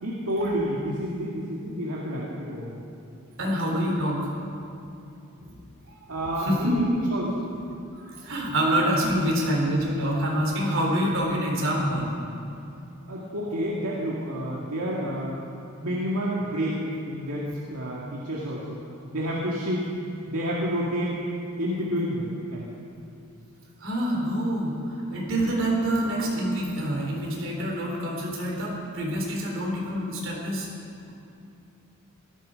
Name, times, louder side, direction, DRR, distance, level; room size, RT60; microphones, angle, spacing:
voice 1, 0.0-2.8 6.1-7.5 9.0-9.1 13.1-15.4 15.7-18.8 19.1-19.9 20.3-21.2 21.6-22.7, equal, 85° right, -5 dB, 2.1 m, -29 dB
voice 2, 3.4-4.3 5.0-5.6 5.9-6.8 8.0-12.2 23.8-30.7, equal, 65° right, -2 dB, 4.0 m, -26 dB
17.0 x 14.0 x 5.2 m, 2.7 s
head